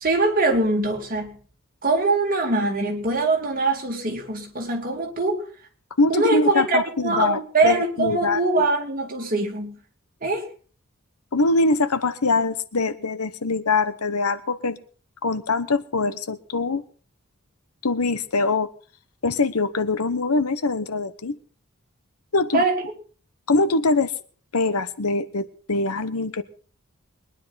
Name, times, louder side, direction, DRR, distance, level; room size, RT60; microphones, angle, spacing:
voice 1, 0.0-1.4 1.8-5.4 6.1-9.8 10.2-10.4 22.5-22.8, right 2 dB, 40° right, 2.5 m, -23 dB
voice 2, 6.0-8.4 11.3-14.8 15.2-16.8 17.8-18.7 19.2-21.4 22.3-22.6 23.5-24.1 24.5-26.4, left 3 dB, 90° left, 1.0 m, -23 dB
22.5 x 10.5 x 4.2 m
head